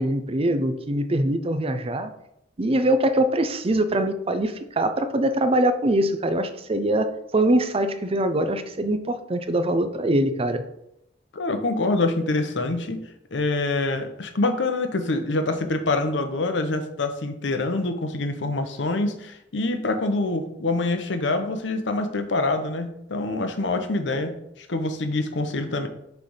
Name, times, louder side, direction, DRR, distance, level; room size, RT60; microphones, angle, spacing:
voice 1, 0.0-2.1 2.6-10.6, right 1 dB, 30° right, 9 dB, 0.5 m, -23 dB
voice 2, 11.3-13.0 13.3-25.9, left 2 dB, 70° left, 7 dB, 0.8 m, -25 dB
6.0 x 3.4 x 5.5 m, 0.79 s
head